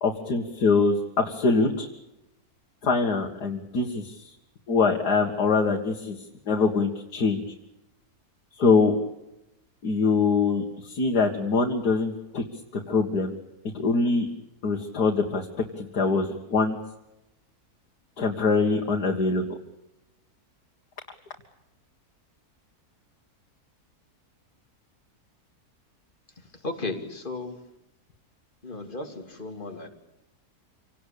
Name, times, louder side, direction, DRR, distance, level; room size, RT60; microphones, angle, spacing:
voice 1, 0.0-1.9 2.8-4.2 4.7-6.2 6.5-7.4 8.6-8.9 9.8-12.4 12.9-13.3 13.7-14.3 14.6-15.5 15.8-16.8 18.2-19.4, left 4 dB, 85° left, 1 dB, 2.4 m, -23 dB
voice 2, 26.4-27.7 28.6-29.9, left 2 dB, 30° left, 5 dB, 2.8 m, -35 dB
27.0 x 18.5 x 8.5 m, 0.92 s
omnidirectional pair, 1.7 m